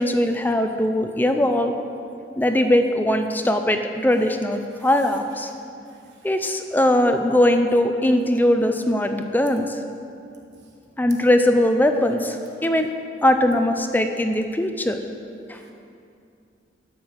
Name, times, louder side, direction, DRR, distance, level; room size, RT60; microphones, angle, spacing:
voice 1, 0.0-1.8 2.4-5.5 6.2-9.7 11.0-12.4 12.6-12.9 13.2-15.0 15.5-15.6, left 1 dB, 10° left, 6 dB, 0.5 m, -20 dB
voice 2, 4.6-5.1 5.5-6.6 15.5-15.7, right 5 dB, 80° right, 0 dB, 1.3 m, -54 dB
12.0 x 6.0 x 7.9 m, 2.5 s
head